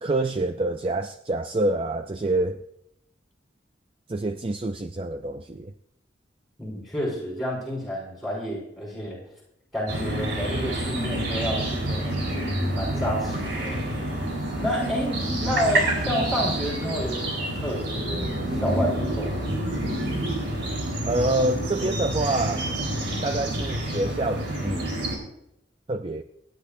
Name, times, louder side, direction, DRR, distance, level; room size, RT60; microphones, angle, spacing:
voice 1, 0.0-2.6 4.1-5.7 21.1-22.7 23.2-24.9 25.9-26.2, right 2 dB, 30° right, 8 dB, 0.4 m, -27 dB
voice 2, 6.6-9.2 9.7-13.8 14.6-19.5, equal, ahead, -4 dB, 5.9 m, -30 dB
sound 1, 9.9-25.1, right 1 dB, 65° right, 4.2 m, -28 dB
25.5 x 10.5 x 2.6 m, 0.80 s
head